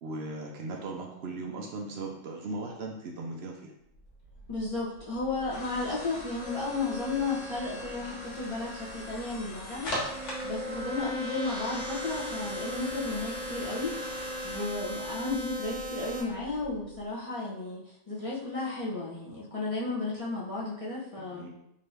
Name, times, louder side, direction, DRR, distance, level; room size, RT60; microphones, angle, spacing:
voice 1, 0.0-3.7 21.3-21.5, right 2 dB, 75° right, 0 dB, 0.5 m, -38 dB
sound 1, 4.0-17.0, equal, 80° left, 1.6 m, -41 dB
voice 2, 4.5-17.8 18.1-21.5, left 3 dB, 40° left, -8 dB, 0.5 m, -34 dB
sound 2, 9.7-16.2, equal, 35° right, 0.9 m, -38 dB
3.8 x 2.6 x 3.3 m, 0.81 s
omnidirectional pair, 1.6 m